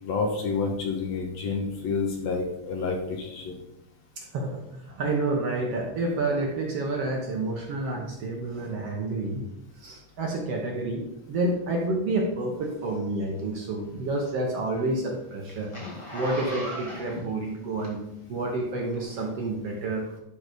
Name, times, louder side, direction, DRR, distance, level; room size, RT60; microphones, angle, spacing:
voice 1, 0.0-3.6, left 4 dB, 65° left, 1 dB, 2.0 m, -29 dB
voice 2, 4.2-9.5 9.8-11.0 11.3-15.7 16.1-18.0 18.3-20.1, right 2 dB, 60° right, 0 dB, 1.8 m, -29 dB
Zipper (clothing), 13.4-18.3 18.9-19.0, equal, 25° left, 0.6 m, -38 dB
11.5 x 4.1 x 5.2 m, 0.89 s
omnidirectional pair, 3.8 m